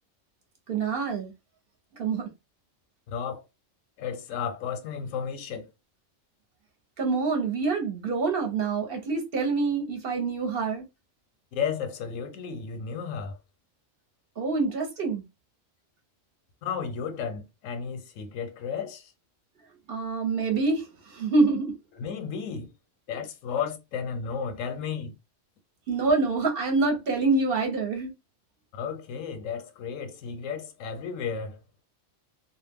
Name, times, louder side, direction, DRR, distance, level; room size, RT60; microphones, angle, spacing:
voice 1, 0.7-1.3 2.0-2.3 7.0-10.8 14.4-15.2 19.9-21.7 25.9-28.1, right 3 dB, 55° right, 0.8 m, -26 dB
voice 2, 3.1-3.4 4.0-5.7 11.5-13.4 16.6-19.1 22.0-22.7 23.1-25.1 28.7-31.6, left 6 dB, 85° left, 1.0 m, -33 dB
2.3 x 2.1 x 3.4 m
omnidirectional pair, 1.3 m